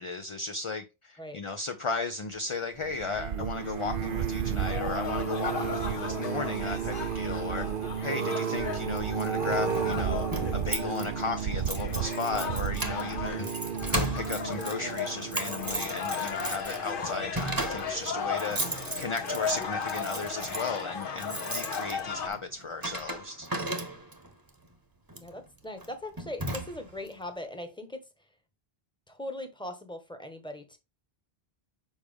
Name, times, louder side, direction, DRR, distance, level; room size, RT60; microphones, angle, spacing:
voice 1, 0.0-7.7 8.0-13.5 13.8-18.6 19.0-23.5, left 4 dB, 40° left, 0.5 m, -35 dB
sound 1, 2.8-16.1 16.7-17.0 17.2-17.3, right 8 dB, 60° right, 0.8 m, -33 dB
sound 2, 3.6-22.3, left 5 dB, 60° left, 1.1 m, -36 dB
Keys jangling, 9.0-24.3 25.1-25.3 25.8-25.9 26.2-27.1, right 1 dB, 20° right, 1.0 m, -36 dB
voice 2, 25.2-28.0 29.1-30.8, left 1 dB, 5° left, 1.1 m, -40 dB
7.1 x 4.8 x 3.4 m
omnidirectional pair, 1.0 m